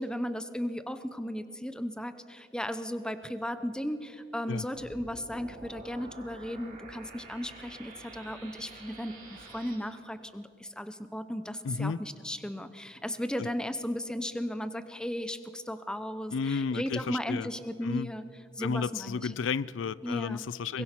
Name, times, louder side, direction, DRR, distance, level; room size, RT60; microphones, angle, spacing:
voice 1, 0.0-18.2 18.6-19.3 20.0-20.4 20.7-20.8, equal, 5° left, 11 dB, 0.8 m, -36 dB
sound 1, 4.7-9.7, right 2 dB, 45° right, 7.0 m, -48 dB
voice 2, 11.6-12.0 13.4-13.5 16.3-17.5 17.8-18.1 18.6-20.8, left 5 dB, 80° left, 20 dB, 0.4 m, -32 dB
23.0 x 21.0 x 6.0 m, 2.5 s
head